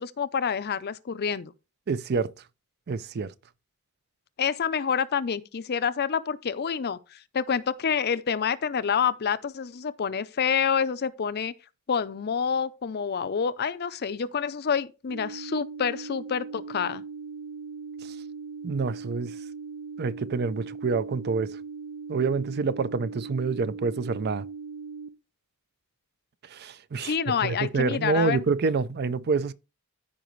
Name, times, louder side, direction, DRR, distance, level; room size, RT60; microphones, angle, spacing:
voice 1, 0.0-1.5 4.4-7.0 7.3-11.5 11.9-17.0 27.0-28.4, left 7 dB, 45° left, 0.5 m, -27 dB
voice 2, 1.9-2.3 2.9-3.3 18.0-18.1 18.6-19.3 20.0-21.6 22.1-24.4 26.5-29.5, right 4 dB, 45° right, 0.4 m, -27 dB
sound 1, 15.1-25.1, right 5 dB, 80° right, 0.7 m, -39 dB
14.0 x 5.0 x 3.1 m
head